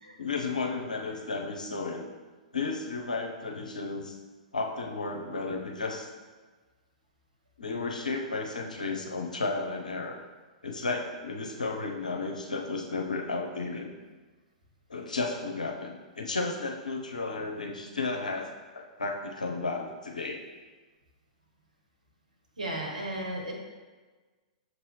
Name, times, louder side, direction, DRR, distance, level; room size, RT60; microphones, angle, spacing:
voice 1, 0.2-2.1 2.5-4.2 4.5-6.1 7.6-10.2 10.6-13.9 14.9-20.4, left 3 dB, 75° left, 2 dB, 0.6 m, -33 dB
voice 2, 22.6-23.5, right 1 dB, 75° right, 0 dB, 1.0 m, -34 dB
6.3 x 2.7 x 3.2 m, 1.3 s
figure-of-eight pair, 105°, 4 cm